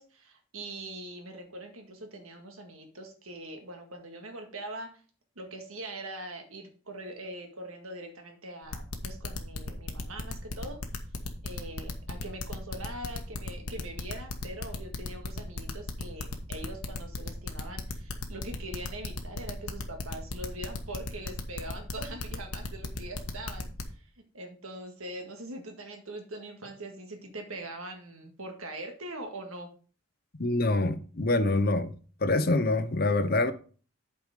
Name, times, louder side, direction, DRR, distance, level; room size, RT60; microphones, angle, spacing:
voice 1, 0.0-4.9 5.4-10.8 11.4-23.7 24.0-24.1 24.3-29.7, right 1 dB, 80° right, 1.8 m, -42 dB
sound 1, 8.7-23.8, left 3 dB, 90° left, 1.2 m, -35 dB
voice 2, 30.4-31.9 32.2-33.5, left 2 dB, 45° left, 0.7 m, -25 dB
8.3 x 4.8 x 5.0 m
head